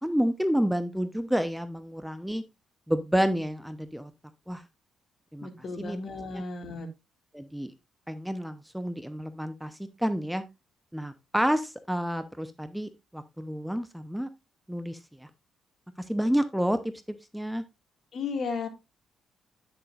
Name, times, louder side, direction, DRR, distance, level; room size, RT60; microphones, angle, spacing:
voice 1, 0.0-2.4 2.9-4.1 4.5-4.6 5.3-5.5 5.8-6.0 6.3-6.4 7.3-7.7 8.1-9.7 10.0-10.4 10.9-14.3 14.7-15.3 16.1-16.8 17.3-17.6, equal, 5° right, 10 dB, 0.8 m, -29 dB
voice 2, 5.4-6.9 18.1-18.7, left 4 dB, 55° left, 6 dB, 2.1 m, -34 dB
9.7 x 7.0 x 2.5 m, 0.23 s
cardioid pair, 90°, 0 cm